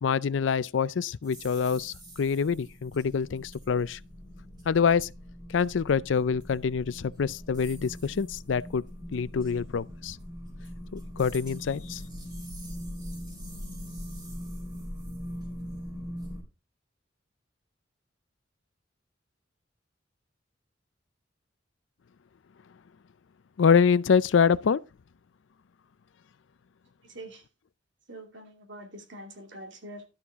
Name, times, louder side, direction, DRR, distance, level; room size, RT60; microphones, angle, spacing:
voice 1, 0.0-4.0 4.7-5.1 5.5-8.8 9.1-10.2 10.9-12.0 23.6-24.8, left 6 dB, 80° left, 0.4 m, -25 dB
sound 1, 1.2-16.4, equal, 25° right, 4.1 m, -41 dB
voice 2, 27.0-27.4 28.1-30.0, right 1 dB, 75° right, 2.6 m, -44 dB
12.0 x 7.1 x 3.6 m
head